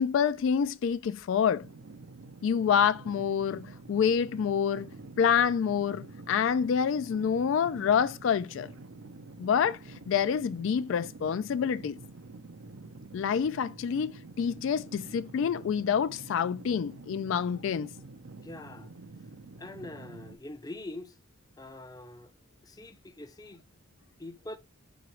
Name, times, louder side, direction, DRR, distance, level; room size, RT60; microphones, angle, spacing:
voice 1, 0.0-1.7 2.4-4.9 5.2-8.7 9.4-9.8 10.1-12.0 13.1-17.9, left 7 dB, 65° left, 0.3 m, -27 dB
sound 1, 1.6-20.4, right 3 dB, 75° right, 0.6 m, -48 dB
voice 2, 18.4-18.9 19.6-21.1 21.6-22.3 22.6-23.6 24.2-24.6, left 2 dB, 20° left, 0.5 m, -43 dB
5.9 x 3.0 x 3.0 m
head